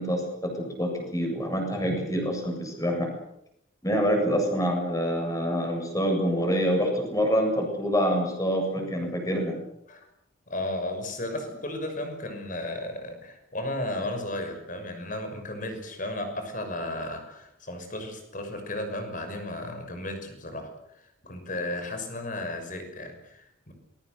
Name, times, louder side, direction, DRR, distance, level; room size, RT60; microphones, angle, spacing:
voice 1, 0.0-3.1 3.8-9.6, equal, 15° left, 3 dB, 7.5 m, -26 dB
voice 2, 10.5-20.7 21.0-23.7, left 1 dB, 40° left, 6 dB, 6.3 m, -34 dB
27.5 x 22.5 x 6.9 m, 0.77 s
head